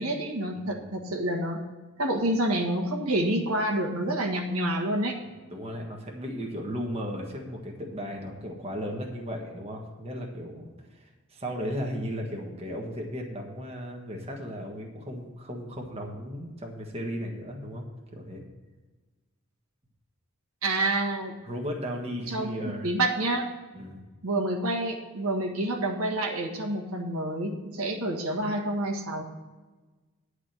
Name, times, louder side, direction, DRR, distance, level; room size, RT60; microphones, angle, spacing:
voice 1, 0.0-1.6 2.0-5.2 20.6-21.3 22.3-22.5 22.8-23.5 24.2-29.2, right 1 dB, 80° right, 1 dB, 1.6 m, -28 dB
voice 2, 0.5-0.9 5.5-17.8 18.1-18.4 21.4-22.9 23.7-24.0, equal, 30° right, 0 dB, 1.5 m, -36 dB
10.0 x 5.0 x 7.5 m, 1.3 s
head